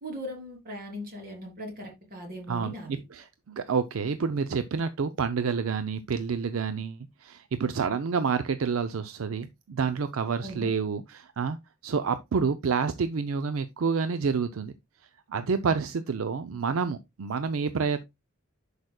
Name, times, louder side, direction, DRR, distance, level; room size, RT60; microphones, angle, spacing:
voice 1, 0.0-3.0 10.4-10.7, equal, 45° right, 3.1 m, -39 dB
voice 2, 2.5-11.6 11.8-14.7 15.3-18.0, right 5 dB, 70° right, 0.5 m, -28 dB
10.5 x 5.1 x 2.2 m
head